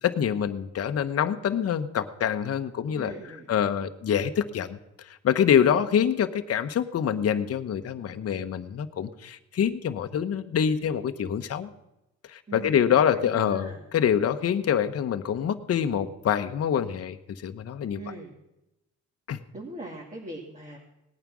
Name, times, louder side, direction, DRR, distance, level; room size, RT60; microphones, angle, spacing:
voice 1, 0.0-3.1 3.5-11.7 12.2-18.0 19.3-19.4, left 8 dB, 55° left, 8 dB, 1.0 m, -26 dB
voice 2, 2.9-3.5 12.5-13.8 18.0-18.4 19.5-20.8, right 2 dB, 25° right, -2 dB, 2.8 m, -40 dB
18.5 x 9.1 x 6.2 m, 0.91 s
cardioid pair, 90°, 30 cm